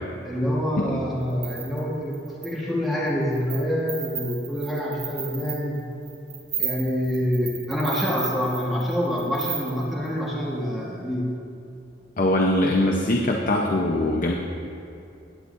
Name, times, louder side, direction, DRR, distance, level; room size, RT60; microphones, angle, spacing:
voice 1, 0.2-5.8 6.6-11.3, equal, ahead, -6 dB, 1.4 m, -26 dB
sound 1, 1.3-2.5 3.1-3.6 3.9-10.1, right 7 dB, 90° right, 2.4 m, -33 dB
voice 2, 12.2-14.3, left 1 dB, 50° left, 0 dB, 0.7 m, -22 dB
16.5 x 9.5 x 2.6 m, 2.6 s
head